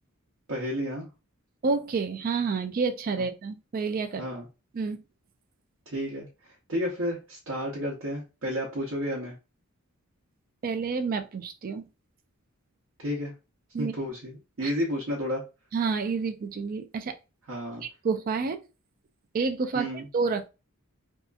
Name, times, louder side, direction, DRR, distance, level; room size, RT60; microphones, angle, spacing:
voice 1, 0.5-1.1 4.2-4.5 5.9-9.4 13.0-13.3 13.8-15.4 17.5-17.8 19.7-20.1, equal, 65° right, 0.7 m, -31 dB
voice 2, 1.6-4.2 4.7-5.0 10.6-11.9 13.7-13.9 14.6-14.7 15.7-17.2 17.8-18.6 19.3-20.5, right 4 dB, 40° right, 0.3 m, -29 dB
2.7 x 2.4 x 2.3 m
head